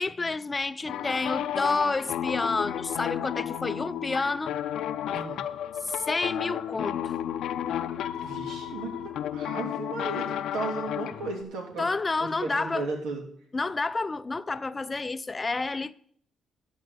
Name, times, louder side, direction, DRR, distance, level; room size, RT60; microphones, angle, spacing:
voice 1, 0.0-4.6 5.8-7.1 11.8-12.9 13.5-15.9, left 3 dB, 25° left, 0.4 m, -29 dB
sound 1, 0.9-11.4, left 10 dB, 80° left, 0.6 m, -32 dB
voice 2, 5.1-5.4 8.2-11.9 12.2-13.2, right 3 dB, 90° right, 3.0 m, -35 dB
12.5 x 4.6 x 7.9 m
cardioid pair, 90°, 0 cm